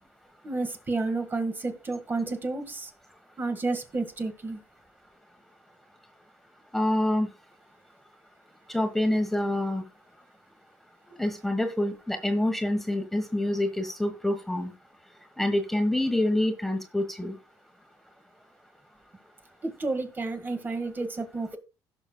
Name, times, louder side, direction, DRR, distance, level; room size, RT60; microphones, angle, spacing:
voice 1, 0.4-2.9 3.4-4.6 19.6-21.6, right 3 dB, 25° right, 7 dB, 1.9 m, -31 dB
voice 2, 6.7-7.3 8.7-9.8 11.2-14.7 15.4-17.4, left 1 dB, 5° left, 6 dB, 1.4 m, -26 dB
16.5 x 6.3 x 2.3 m, 0.29 s
cardioid pair, 100°, 7 cm